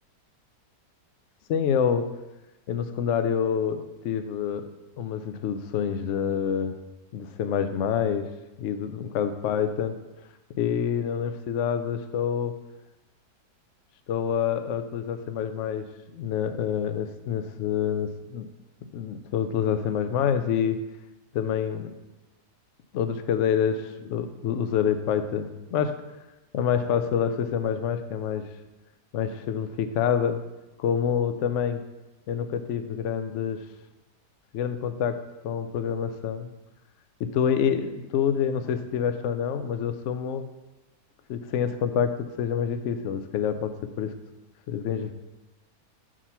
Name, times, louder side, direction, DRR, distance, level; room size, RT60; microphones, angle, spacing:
voice 1, 1.5-2.1 2.7-4.7 5.0-6.7 7.1-8.3 8.6-9.9 10.6-12.6 14.1-15.9 16.1-18.5 18.9-20.8 21.3-21.9 22.9-26.0 26.5-28.5 29.1-30.4 30.8-31.8 32.3-33.6 34.5-36.5 37.2-40.4 41.3-44.1 44.7-45.1, left 8 dB, 80° left, 10 dB, 0.6 m, -27 dB
5.5 x 5.0 x 5.7 m, 1.0 s
omnidirectional pair, 1.8 m